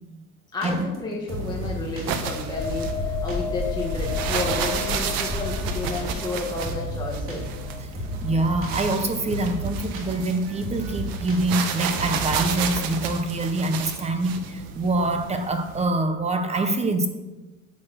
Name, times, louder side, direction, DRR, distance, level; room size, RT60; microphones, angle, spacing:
voice 1, 0.5-7.5, left 2 dB, 10° left, -3 dB, 1.4 m, -31 dB
sound 1, 0.6-13.0, right 1 dB, 40° right, 2.9 m, -34 dB
sound 2, 1.3-15.8, right 7 dB, 85° right, 1.4 m, -32 dB
sound 3, 2.5-9.9 10.3-10.5, left 6 dB, 50° left, 1.0 m, -33 dB
voice 2, 8.2-17.1, right 2 dB, 20° right, 7 dB, 0.8 m, -25 dB
8.8 x 8.4 x 6.5 m, 1.1 s
cardioid pair, 170°, 34 cm